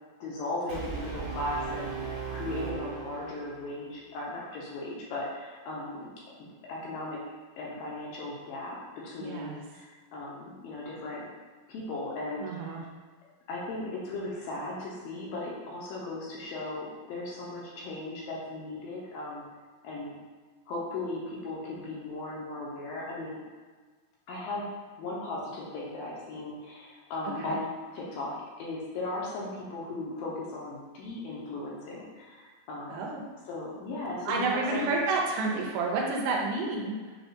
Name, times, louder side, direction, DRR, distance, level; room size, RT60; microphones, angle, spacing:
voice 1, 0.2-6.1 6.7-7.2 7.6-8.8 9.0-11.2 11.7-12.7 13.5-19.5 19.8-20.1 20.7-23.4 24.3-24.6 25.0-27.7 27.9-33.0 33.5-34.9, left 2 dB, 80° left, -5 dB, 2.3 m, -37 dB
Brass instrument, 0.7-3.8, right 6 dB, 65° right, 2.0 m, -37 dB
voice 2, 9.2-9.6 12.4-12.8 27.4-27.6 32.9-33.2 34.3-37.2, right 3 dB, 85° right, -1 dB, 2.4 m, -30 dB
6.6 x 2.3 x 2.6 m, 1.4 s
omnidirectional pair, 4.4 m